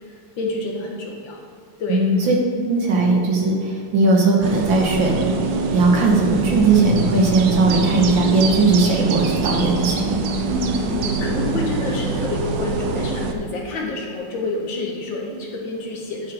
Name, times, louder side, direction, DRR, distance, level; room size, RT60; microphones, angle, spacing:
voice 1, 0.4-1.4 1.8-2.0 10.4-16.3, left 2 dB, 80° left, 0 dB, 2.2 m, -28 dB
voice 2, 1.9-2.4 2.7-5.4 5.7-10.2, right 3 dB, 90° right, -1 dB, 2.2 m, -18 dB
sound 1, 4.4-13.3, right 3 dB, 75° right, 1.4 m, -24 dB
10.5 x 8.2 x 3.6 m, 2.3 s
omnidirectional pair, 2.0 m